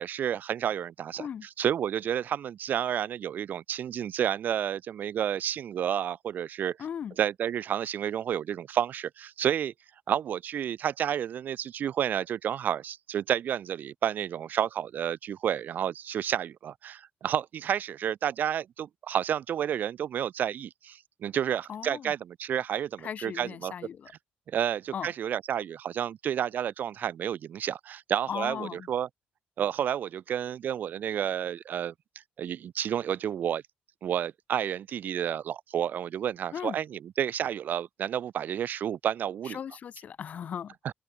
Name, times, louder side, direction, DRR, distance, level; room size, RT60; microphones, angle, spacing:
voice 1, 0.0-1.3 1.6-6.8 7.2-9.7 10.1-23.7 24.5-29.1 29.6-31.9 32.4-33.6 34.0-39.6 40.8-40.9, right 9 dB, 50° right, 0.9 m, -30 dB
voice 2, 1.2-1.5 6.8-7.2 21.7-22.1 23.0-24.1 24.9-25.1 28.3-28.9 36.5-36.8 39.4-40.8, left 8 dB, 40° left, 0.4 m, -37 dB
cardioid pair, 175°, 4 cm